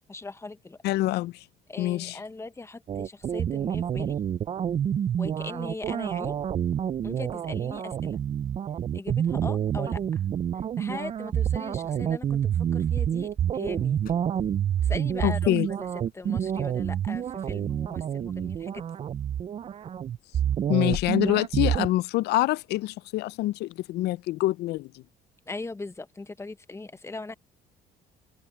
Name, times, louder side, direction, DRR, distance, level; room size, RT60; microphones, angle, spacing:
voice 1, 0.1-0.8 1.7-4.2 5.2-6.3 7.0-8.2 8.9-10.0 10.8-14.0 14.8-15.9 16.1-18.8 25.5-27.3, left 3 dB, 15° left, 1.0 m, -39 dB
voice 2, 0.8-1.3 1.8-2.2 15.2-15.7 20.7-24.9, left 16 dB, 75° left, 0.5 m, -25 dB
sound 1, 2.9-21.9, right 9 dB, 35° right, 0.4 m, -28 dB
sound 2, 10.8-21.9, left 11 dB, 60° left, 7.3 m, -49 dB
open air
cardioid pair, 110°, 17 cm